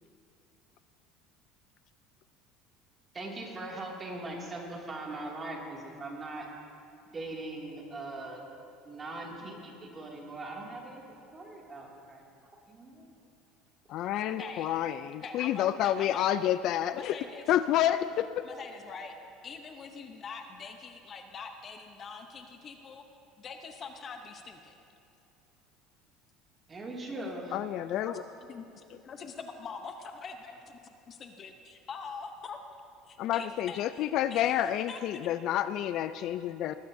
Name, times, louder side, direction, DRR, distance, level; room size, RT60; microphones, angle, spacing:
voice 1, 3.1-6.5 7.1-8.4 8.8-12.2 12.7-13.1 26.7-27.6, right 2 dB, 25° right, -2 dB, 2.4 m, -40 dB
voice 2, 13.9-17.2 17.5-18.3 27.5-28.2 33.2-36.7, left 11 dB, 55° left, 13 dB, 0.3 m, -29 dB
voice 3, 15.2-16.3 16.9-17.4 18.4-19.1 19.4-23.0 23.4-24.8 27.2-27.3 27.9-28.2 28.5-30.8 31.1-32.6 33.3-34.5 34.9-35.3, left 5 dB, 35° left, 5 dB, 0.8 m, -44 dB
19.5 x 15.5 x 2.7 m, 2.7 s
cardioid pair, 135°, 0 cm